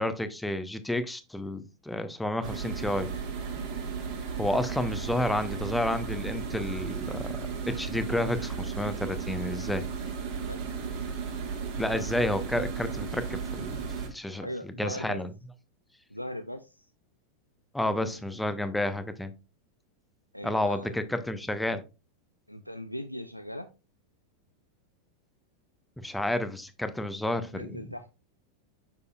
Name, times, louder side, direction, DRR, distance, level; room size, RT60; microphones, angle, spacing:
voice 1, 0.0-3.1 4.4-7.3 7.7-9.8 11.8-14.5 14.8-15.3 17.7-19.3 20.4-21.8 26.0-27.8, left 1 dB, 5° left, 0.7 m, -30 dB
sound 1, 2.4-14.1, right 6 dB, 45° right, 1.5 m, -35 dB
voice 2, 10.4-10.8 14.4-15.2 16.1-16.9 18.1-18.4 20.3-20.9 22.5-23.7 27.5-28.1, equal, 90° left, 0.4 m, -39 dB
6.9 x 6.5 x 2.4 m
figure-of-eight pair, 90°, 0 cm